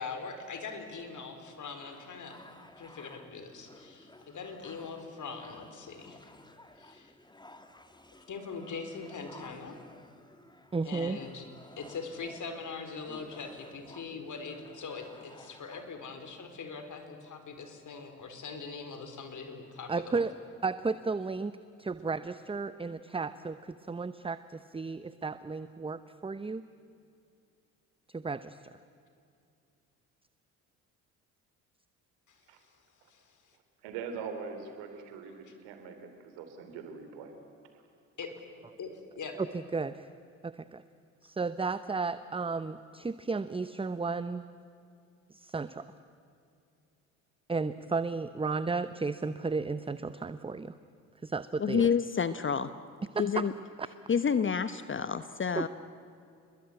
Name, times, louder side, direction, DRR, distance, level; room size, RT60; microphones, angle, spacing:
voice 1, 0.0-2.4 2.8-6.4 6.8-7.1 8.3-9.8 10.8-11.5 11.8-20.2 32.3-32.4 33.1-33.4 35.5-35.6 38.2-38.3 38.8-39.4, left 4 dB, 50° left, 7 dB, 4.5 m, -42 dB
sound 1, 1.8-16.0, left 1 dB, 10° left, 2.3 m, -55 dB
voice 2, 10.7-11.2 19.9-20.3 20.6-21.5 21.8-26.6 28.1-28.6 39.4-39.5 39.7-40.1 40.4-40.8 41.2-44.4 45.3-45.9 47.5-50.7 51.2-51.9 53.1-53.2 55.6-55.7, right 4 dB, 15° right, 13 dB, 0.8 m, -33 dB
voice 3, 33.8-37.3, right 5 dB, 75° right, 6 dB, 3.7 m, -42 dB
voice 4, 51.6-52.7 53.2-53.5 54.1-55.7, left 6 dB, 30° left, 12 dB, 1.0 m, -28 dB
29.0 x 21.5 x 8.9 m, 2.5 s
hypercardioid pair, 60°, 40 cm